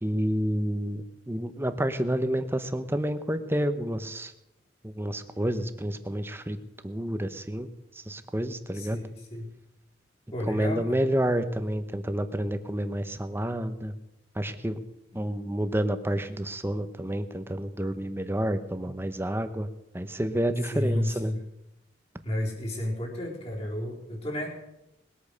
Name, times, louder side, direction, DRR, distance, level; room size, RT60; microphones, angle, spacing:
voice 1, 0.0-4.3 4.8-6.6 6.8-7.7 8.1-9.0 10.5-13.9 14.4-14.8 15.1-19.7 19.9-21.3, right 1 dB, 15° right, 10 dB, 0.9 m, -29 dB
voice 2, 8.7-9.5 10.3-11.0 20.7-21.4 22.2-24.5, left 1 dB, 35° left, -3 dB, 4.3 m, -31 dB
20.5 x 8.6 x 6.5 m, 0.88 s
head